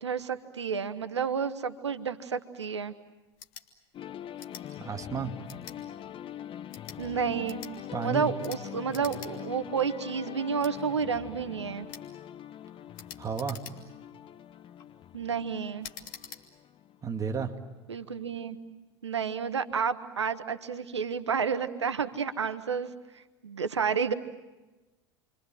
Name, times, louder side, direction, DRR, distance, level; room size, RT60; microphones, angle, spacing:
voice 1, 0.0-2.9 7.0-7.6 8.0-11.9 15.1-15.9 17.9-18.6 19.0-22.9 23.4-24.1, right 6 dB, 85° right, 11 dB, 1.2 m, -30 dB
sound 1, 3.3-3.7 4.4-4.7 5.5-5.8 6.6-7.0 7.4-7.7 8.4-8.6 8.9-9.3 9.7-9.8 10.6-10.7 11.9-12.1 12.9-14.0 14.6-14.9 15.8-16.4, left 8 dB, 60° left, 2.9 m, -45 dB
sound 2, 3.9-17.7, left 10 dB, 40° left, 1.3 m, -43 dB
voice 2, 4.8-5.4 7.9-8.3 13.2-13.6 17.0-17.5, right 6 dB, 25° right, 4 dB, 2.5 m, -32 dB
29.5 x 24.5 x 7.7 m, 1.1 s
hypercardioid pair, 80°, 14 cm